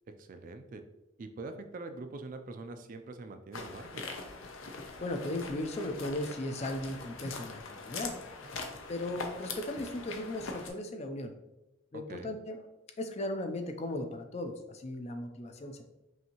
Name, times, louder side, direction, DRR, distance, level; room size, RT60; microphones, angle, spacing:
voice 1, 0.2-0.8 1.2-4.1 12.1-12.3, right 3 dB, 40° right, 7 dB, 0.3 m, -44 dB
sound 1, 3.5-10.7, left 4 dB, 75° left, 0.6 m, -42 dB
voice 2, 5.0-8.1 8.9-11.3 11.9-12.6 13.0-15.8, left 1 dB, 30° left, 6 dB, 0.4 m, -37 dB
5.5 x 2.6 x 2.9 m, 0.95 s
head